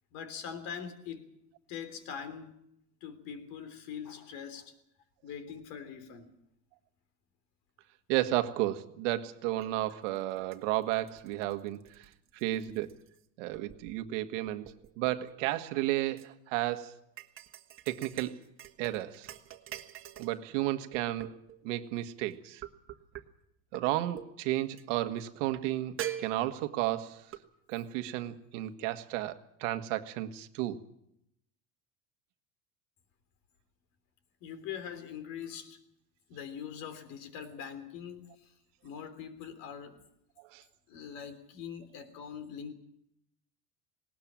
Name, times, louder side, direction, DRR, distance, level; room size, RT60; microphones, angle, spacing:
voice 1, 0.1-1.2 1.7-2.5 3.0-4.7 5.2-6.3 34.4-35.8 36.3-38.3 38.8-40.0 40.9-42.7, left 7 dB, 65° left, 3.4 m, -42 dB
voice 2, 8.1-12.9 13.4-17.0 17.8-18.4 18.8-19.3 20.2-21.3 21.6-22.6 23.7-27.2 27.7-30.8 40.4-40.6, right 15 dB, 85° right, 1.6 m, -33 dB
sound 1, 9.6-9.7 10.2-13.2 13.5-14.1 14.5-16.3 17.2-20.4 20.9-21.6 22.6-23.2 23.7-23.9 24.2-24.3 24.8-24.9 25.5-25.6 26.0-26.8 27.3-27.4, right 11 dB, 35° right, 1.5 m, -44 dB
19.5 x 19.0 x 7.5 m
cardioid pair, 140°, 36 cm